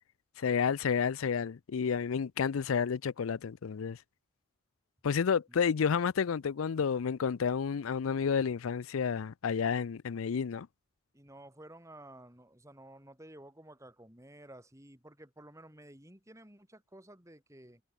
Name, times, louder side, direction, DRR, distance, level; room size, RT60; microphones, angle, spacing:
voice 1, 0.4-4.0 5.0-10.7, left 6 dB, 90° left, 0.5 m, -30 dB
voice 2, 11.1-17.8, right 1 dB, 15° right, 4.8 m, -53 dB
head